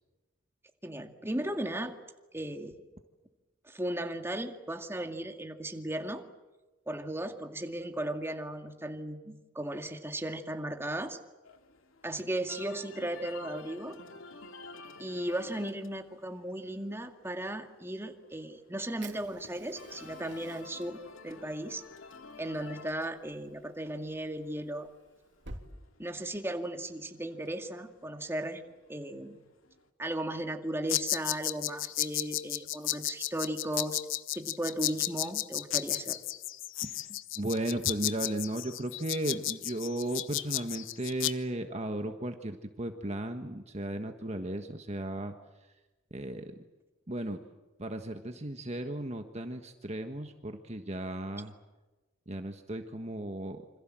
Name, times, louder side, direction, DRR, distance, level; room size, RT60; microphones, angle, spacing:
voice 1, 0.8-2.0 2.3-2.7 3.6-6.2 6.9-11.2 12.0-14.0 15.0-21.8 22.4-24.9 26.0-28.6 28.9-29.4 30.0-34.0 34.3-36.2, right 1 dB, 10° right, 5 dB, 2.2 m, -36 dB
sound 1, 11.4-29.9, left 4 dB, 85° left, 2.7 m, -52 dB
Fire, 19.0-25.6, right 2 dB, 60° right, 3.4 m, -52 dB
sound 2, 30.9-41.3, left 13 dB, 70° left, 1.1 m, -33 dB
voice 2, 37.4-45.3 46.1-46.5 47.1-47.4 47.8-51.5 52.3-53.8, right 1 dB, 35° right, 5 dB, 1.5 m, -35 dB
28.0 x 26.5 x 7.7 m, 1.2 s
head